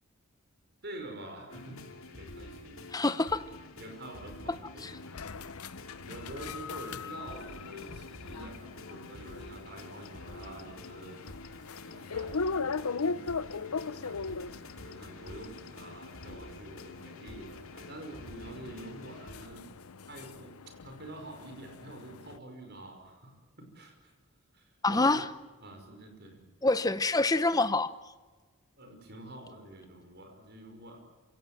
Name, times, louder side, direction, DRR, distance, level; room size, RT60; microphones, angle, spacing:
voice 1, 0.8-1.9 2.2-3.0 3.8-4.9 6.1-11.2 11.8-14.2 14.8-19.7 20.1-20.6 20.8-24.1 24.5-25.2 25.6-26.4 28.8-31.0, right 1 dB, 50° right, 4 dB, 5.5 m, -47 dB
sound 1, 1.5-19.5, left 2 dB, 65° left, 2.7 m, -48 dB
voice 2, 2.9-3.4 4.5-5.0 24.8-25.3 26.6-28.1, left 2 dB, 15° left, 13 dB, 0.7 m, -27 dB
sound 2, 4.8-22.4, left 4 dB, 85° left, 0.7 m, -40 dB
27.0 x 17.5 x 9.2 m, 1.3 s
head